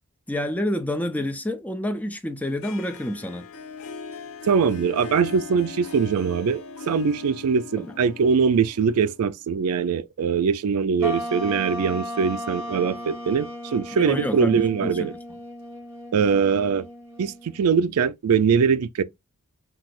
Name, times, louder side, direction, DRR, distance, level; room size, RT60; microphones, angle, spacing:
voice 1, 0.3-3.5 7.8-7.9 13.9-15.1, left 1 dB, 5° left, 0.5 m, -28 dB
Harp, 2.6-9.5, left 5 dB, 65° left, 0.6 m, -39 dB
voice 2, 4.5-15.1 16.1-16.9 17.2-19.0, right 6 dB, 75° right, 0.4 m, -22 dB
sound 1, 11.0-17.7, left 1 dB, 10° right, 0.9 m, -35 dB
5.8 x 2.0 x 2.4 m
head